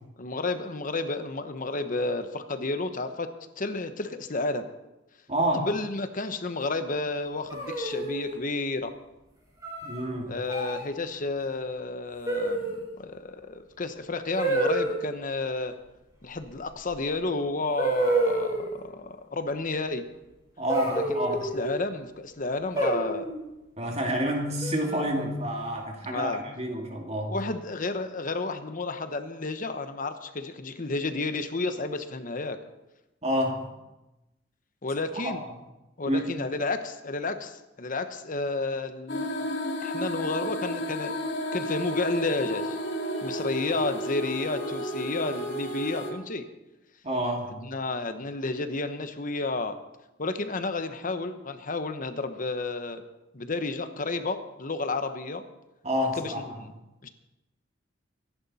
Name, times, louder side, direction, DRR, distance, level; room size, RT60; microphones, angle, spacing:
voice 1, 0.2-3.3 3.6-4.7 5.6-8.9 10.3-15.7 16.2-20.0 20.9-23.2 26.0-26.4 27.3-32.6 34.8-35.4 36.0-39.3 39.8-41.1 41.5-42.8 43.2-46.4 47.6-49.7 50.2-53.0 53.3-55.4 56.2-56.7 57.0-57.1, left 3 dB, 45° left, 9 dB, 1.1 m, -31 dB
voice 2, 5.3-5.7 9.8-10.4 20.6-21.5 23.8-27.4 33.2-33.7 35.1-35.5 36.0-36.4 47.0-47.7 55.8-56.6, equal, 35° right, 1 dB, 2.5 m, -29 dB
sound 1, 7.5-8.4 9.6-10.0 10.5-10.8 12.2-12.9 14.4-15.0 16.9-17.0 17.8-18.7 20.7-21.8 22.7-23.4 24.6-25.2, right 2 dB, 20° right, 5.6 m, -28 dB
sound 2, 39.1-46.1, equal, 65° left, 2.4 m, -32 dB
24.5 x 11.0 x 4.3 m, 0.99 s
head